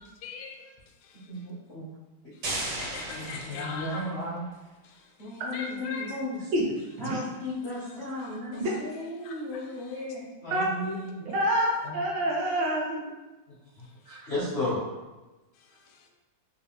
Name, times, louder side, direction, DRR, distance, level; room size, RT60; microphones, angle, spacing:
voice 1, 0.2-0.6 1.0-1.3 2.5-4.3 4.8-6.1 7.1-7.2 7.7-8.7 9.2-10.0 15.9-16.1, left 4 dB, 85° left, 2 dB, 1.5 m, -42 dB
voice 2, 1.3-1.9 3.1-4.4 5.2-6.4 7.0-11.3 11.8-12.0 13.8-14.8, left 1 dB, 65° left, -9 dB, 0.6 m, -34 dB
sound 1, 2.4-4.3, right 2 dB, 85° right, 1.9 m, -35 dB
voice 3, 10.5-11.0 11.3-13.1, right 1 dB, 70° right, -3 dB, 1.2 m, -27 dB
3.9 x 2.5 x 2.9 m, 1.1 s
omnidirectional pair, 2.3 m